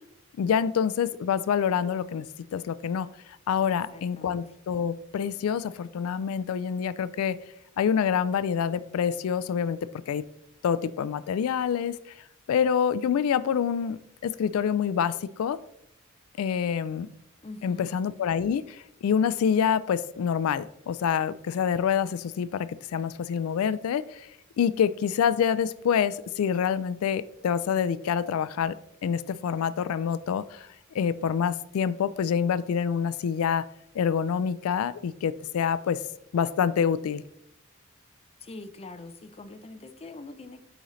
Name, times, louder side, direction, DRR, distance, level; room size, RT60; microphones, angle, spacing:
voice 1, 0.4-3.1 3.5-7.4 7.8-9.8 10.1-10.2 10.6-12.2 12.5-15.6 16.4-17.1 17.6-24.3 24.6-28.7 29.0-30.7 30.9-33.7 33.9-36.0 36.3-37.2, left 7 dB, 90° left, 15 dB, 0.3 m, -26 dB
voice 2, 3.6-4.4 17.4-17.9 38.4-40.6, left 2 dB, 30° left, 9 dB, 0.5 m, -44 dB
8.7 x 4.0 x 3.1 m, 0.78 s
head